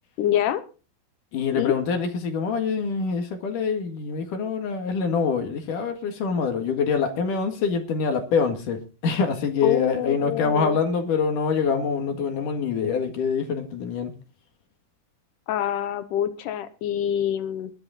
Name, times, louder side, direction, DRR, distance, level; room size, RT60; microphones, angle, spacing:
voice 1, 0.2-0.6 1.5-1.7 9.6-10.8 15.5-17.7, left 11 dB, 85° left, 1.8 m, -26 dB
voice 2, 1.3-14.1, left 5 dB, 55° left, 2.9 m, -25 dB
21.0 x 7.9 x 4.1 m
omnidirectional pair, 5.1 m